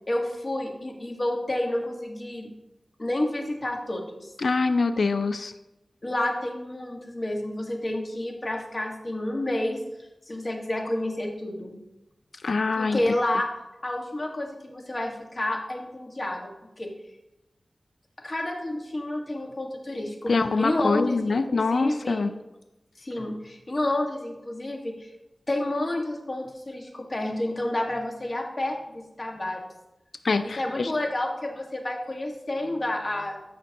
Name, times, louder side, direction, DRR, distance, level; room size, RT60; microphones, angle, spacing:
voice 1, 0.1-2.5 3.0-4.3 6.0-9.8 10.3-11.7 12.8-13.5 13.8-16.5 16.8-16.9 18.2-20.3 20.6-22.2 23.0-25.1 25.5-29.6 30.6-33.4, left 1 dB, 45° left, 1 dB, 1.7 m, -30 dB
voice 2, 4.4-5.5 12.4-13.0 20.3-22.3 30.2-30.9, left 4 dB, 80° left, 10 dB, 0.5 m, -24 dB
13.5 x 6.1 x 3.0 m, 0.94 s
wide cardioid pair, 55°, 0 cm